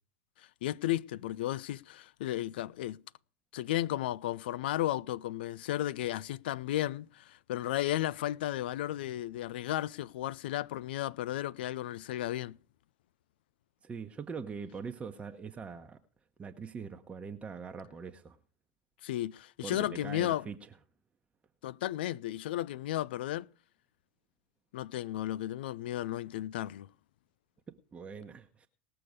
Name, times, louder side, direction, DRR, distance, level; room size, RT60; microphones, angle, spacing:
voice 1, 0.6-3.0 3.5-12.6 19.0-20.5 21.6-23.5 24.7-26.9, left 13 dB, 70° left, 0.5 m, -34 dB
voice 2, 13.8-16.0 16.4-18.4 19.6-20.7 27.7-28.7, right 5 dB, 20° right, 1.0 m, -42 dB
19.0 x 6.9 x 5.0 m
hypercardioid pair, 95°, 6 cm